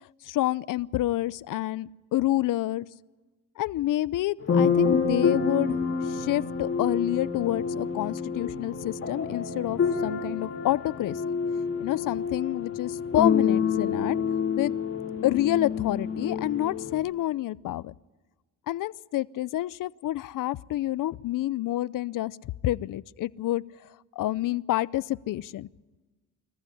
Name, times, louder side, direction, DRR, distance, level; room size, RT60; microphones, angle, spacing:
voice 1, 0.3-2.9 3.6-5.8 6.1-11.2 11.8-14.2 14.6-14.7 15.2-17.9 18.7-22.4 22.6-23.6 24.2-25.7, left 15 dB, 55° left, 20 dB, 0.6 m, -28 dB
sound 1, 4.4-17.0, left 5 dB, 35° left, 2.8 m, -28 dB
21.5 x 14.5 x 9.8 m, 1.3 s
cardioid pair, 95°, 38 cm